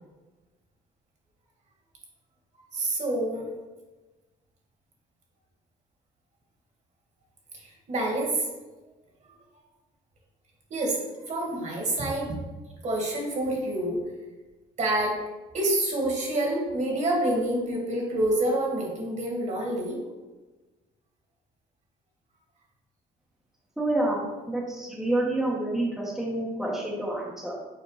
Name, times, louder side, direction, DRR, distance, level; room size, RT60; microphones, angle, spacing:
voice 1, 2.7-3.4 7.5-7.6 7.9-8.5 10.7-12.4 12.8-14.0 14.8-15.2 15.5-20.0, right 1 dB, 45° right, -1 dB, 2.2 m, -27 dB
voice 2, 23.8-27.5, right 1 dB, ahead, -4 dB, 1.3 m, -28 dB
6.7 x 4.4 x 4.1 m, 1.2 s
cardioid pair, 110°, 17 cm